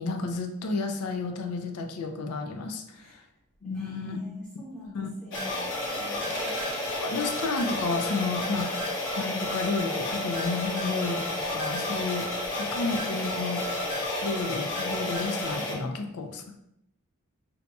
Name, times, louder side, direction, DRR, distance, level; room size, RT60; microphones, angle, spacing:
voice 1, 0.0-3.2 3.6-4.2 4.9-5.1 6.7-8.7 9.2-12.3 12.6-13.6 14.2-16.6, left 3 dB, 85° left, 5 dB, 0.4 m, -32 dB
voice 2, 3.6-6.6, left 1 dB, 5° left, -7 dB, 0.6 m, -45 dB
sound 1, 5.3-15.7, left 1 dB, 60° left, 0.8 m, -31 dB
sound 2, 6.2-7.2 8.8-9.1 10.8-11.1, right 4 dB, 55° right, 0.4 m, -42 dB
2.8 x 2.2 x 4.0 m, 0.79 s
head